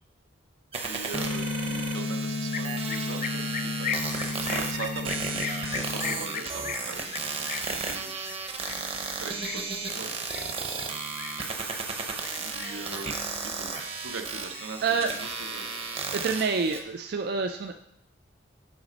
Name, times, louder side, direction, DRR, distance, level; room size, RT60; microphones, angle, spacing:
sound 1, 0.7-16.8, right 4 dB, 30° right, 0.8 m, -34 dB
voice 1, 0.9-8.3 9.2-10.3 11.9-12.1 12.5-13.7 14.0-16.3, right 4 dB, 85° right, 5 dB, 0.8 m, -41 dB
sound 2, 1.1-6.1, left 3 dB, 60° left, 0.9 m, -33 dB
sound 3, 2.5-11.9 12.2-13.0 13.3-14.3 14.5-15.9, left 8 dB, 40° left, 0.3 m, -38 dB
voice 2, 14.8-15.1 16.1-17.7, right 4 dB, 55° right, 6 dB, 0.3 m, -27 dB
7.8 x 4.1 x 5.2 m, 0.78 s
head